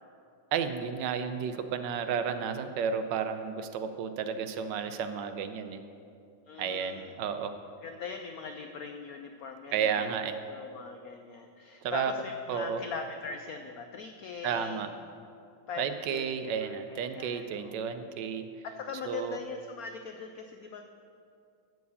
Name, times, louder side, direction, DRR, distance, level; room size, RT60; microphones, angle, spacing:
voice 1, 0.5-5.8 6.6-7.5 9.7-10.3 11.8-12.1 12.5-12.8 14.4-14.9 15.8-18.5 19.1-19.4, right 7 dB, 75° right, 9 dB, 1.2 m, -32 dB
voice 2, 6.5-7.1 7.8-10.1 10.5-14.8 15.7-17.8 18.6-20.8, left 5 dB, 80° left, 6 dB, 0.8 m, -41 dB
12.5 x 4.7 x 8.4 m, 2.5 s
omnidirectional pair, 2.1 m